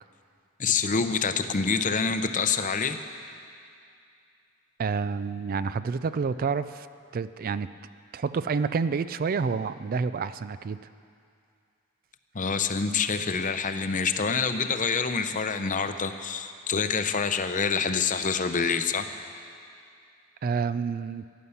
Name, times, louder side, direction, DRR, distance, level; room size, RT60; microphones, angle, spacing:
voice 1, 0.6-3.0 12.3-19.3, left 5 dB, 35° left, 9 dB, 0.7 m, -26 dB
voice 2, 4.8-6.9 7.1-7.7 8.1-10.8 20.4-21.2, right 5 dB, 40° right, 14 dB, 0.3 m, -28 dB
15.0 x 11.0 x 7.0 m, 2.4 s
head